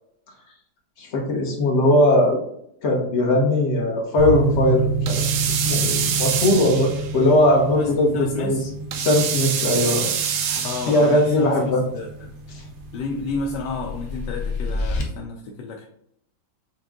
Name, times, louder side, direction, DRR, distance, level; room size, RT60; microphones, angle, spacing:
voice 1, 1.0-2.4 2.8-5.2 5.5-8.6 9.0-10.0 10.3-11.8, left 1 dB, 45° left, -1 dB, 1.2 m, -19 dB
sound 1, 4.2-15.0, right 4 dB, 60° right, 1.1 m, -30 dB
sound 2, 5.1-7.2 8.9-11.2, right 8 dB, 80° right, 1.2 m, -25 dB
voice 2, 7.7-8.7 10.6-12.3 12.9-15.9, left 4 dB, 80° left, 1 dB, 1.2 m, -31 dB
sound 3, 12.3-15.0, left 3 dB, 65° left, 1.2 m, -30 dB
6.2 x 2.3 x 3.6 m, 0.72 s
omnidirectional pair, 1.8 m